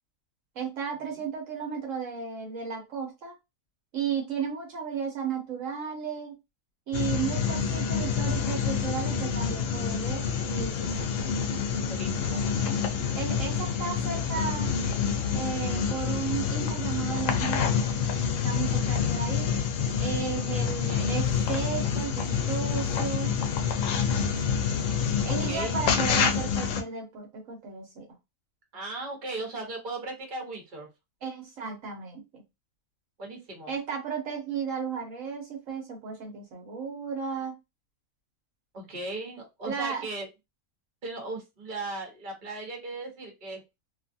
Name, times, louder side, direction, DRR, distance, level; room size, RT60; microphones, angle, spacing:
voice 1, 0.5-3.3 3.9-6.4 6.9-11.1 13.1-14.7 15.3-17.8 18.4-19.6 20.0-23.3 25.2-28.1 31.2-32.4 33.7-37.5 39.7-40.1, right 6 dB, 70° right, 1 dB, 1.3 m, -34 dB
sound 1, 6.9-26.8, left 6 dB, 75° left, 0.9 m, -27 dB
voice 2, 11.9-12.4 20.8-21.1 25.3-25.8 28.7-30.9 33.2-33.7 38.7-40.3 41.0-43.6, right 2 dB, 40° right, 1 dB, 1.2 m, -37 dB
2.8 x 2.4 x 2.6 m, 0.23 s
omnidirectional pair, 1.4 m